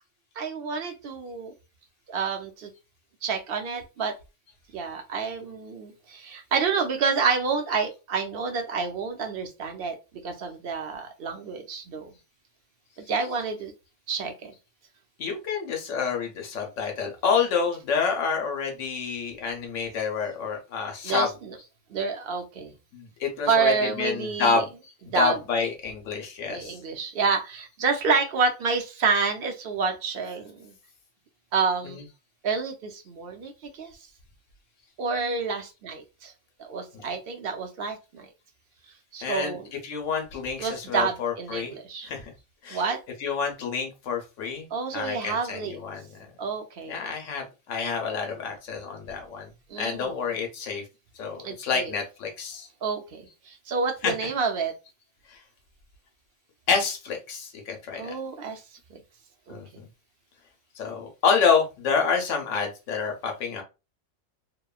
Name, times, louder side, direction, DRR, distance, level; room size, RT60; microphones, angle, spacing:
voice 1, 0.4-1.5 2.1-2.7 3.2-4.1 4.7-10.0 10.2-12.1 13.0-13.7 14.1-14.5 21.0-21.5 21.9-22.8 23.5-24.6 25.1-25.4 26.5-30.7 31.5-32.0 32.4-33.5 33.8-33.9 35.0-36.3 36.6-38.3 39.1-39.7 40.6-42.1 42.7-43.0 44.7-45.8 46.4-46.9 49.7-50.2 51.4-51.9 52.8-54.7 58.0-58.6 59.5-59.6, right 5 dB, 60° right, 4 dB, 0.7 m, -28 dB
voice 2, 15.2-21.3 22.9-24.7 25.1-26.8 31.8-32.0 36.9-37.1 39.2-39.6 39.8-41.7 42.0-42.2 42.6-42.8 43.2-44.7 44.9-46.2 46.9-49.5 49.8-50.8 51.2-52.7 54.0-54.1 55.3-55.4 56.7-58.1 59.5-59.9 60.8-63.6, left 5 dB, 85° left, 2 dB, 1.0 m, -28 dB
2.9 x 2.1 x 2.3 m, 0.28 s
omnidirectional pair, 1.2 m